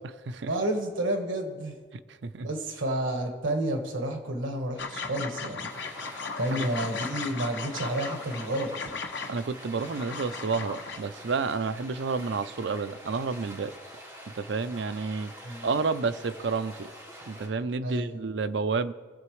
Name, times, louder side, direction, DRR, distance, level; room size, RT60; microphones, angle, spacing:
voice 1, 0.5-1.7 2.4-5.7 6.4-8.9 15.4-15.7 17.8-18.2, right 1 dB, 85° right, 4 dB, 1.4 m, -30 dB
sound 1, 4.8-11.0, left 4 dB, 65° left, 0.9 m, -37 dB
Stream, 5.7-17.5, equal, 15° right, 2.2 m, -46 dB
voice 2, 9.3-13.7 14.3-15.3 15.6-16.9 17.3-18.9, right 4 dB, 65° right, 12 dB, 0.5 m, -30 dB
22.5 x 7.6 x 3.2 m, 1.5 s
head